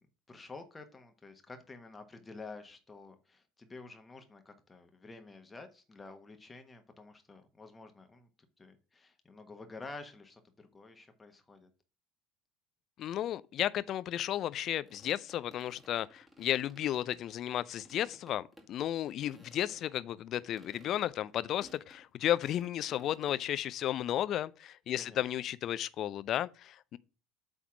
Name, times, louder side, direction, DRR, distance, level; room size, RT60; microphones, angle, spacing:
voice 1, 0.3-8.3 8.6-11.7 23.8-24.0 25.0-25.2, left 3 dB, 20° left, 1.3 m, -50 dB
voice 2, 13.0-27.0, left 12 dB, 50° left, 0.4 m, -33 dB
sound 1, 14.8-17.6 17.8-18.7 19.0-20.0 20.3-23.4, equal, 10° right, 2.2 m, -59 dB
8.4 x 3.6 x 5.9 m
hypercardioid pair, 65°, 0 cm